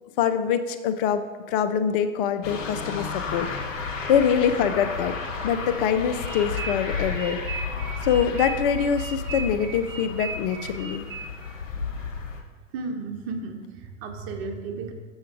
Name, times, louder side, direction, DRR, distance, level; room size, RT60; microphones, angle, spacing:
voice 1, 0.2-5.1 5.4-7.4 8.0-11.1, left 8 dB, 45° left, 10 dB, 0.5 m, -24 dB
sound 1, 2.4-12.4, left 5 dB, 75° left, 1.4 m, -33 dB
sound 2, 6.2-11.6, right 4 dB, 70° right, 1.0 m, -37 dB
voice 2, 12.7-14.9, right 4 dB, 50° right, 4 dB, 1.3 m, -34 dB
6.9 x 6.3 x 4.8 m, 1.5 s
hypercardioid pair, 105°, 39 cm